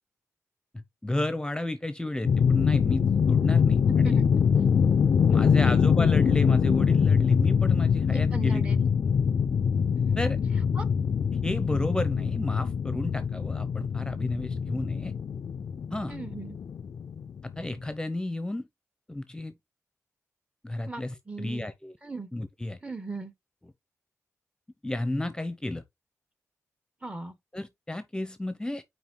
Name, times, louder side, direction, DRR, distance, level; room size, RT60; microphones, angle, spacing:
voice 1, 0.7-4.2 5.3-8.6 10.2-10.4 11.4-15.1 15.9-16.2 17.6-18.7 19.1-19.5 20.6-21.9 22.3-22.8 24.8-25.8 27.5-28.8, left 1 dB, 15° left, 0.9 m, -32 dB
sound 1, 2.2-17.7, left 6 dB, 75° left, 0.4 m, -24 dB
voice 2, 3.9-4.3 5.4-5.8 8.1-8.9 10.0-10.2 10.7-10.8 16.1-16.6 20.8-21.7 22.0-22.3 22.8-23.3 27.0-27.3, right 3 dB, 20° right, 1.5 m, -38 dB
5.7 x 4.8 x 3.9 m
cardioid pair, 65°, 6 cm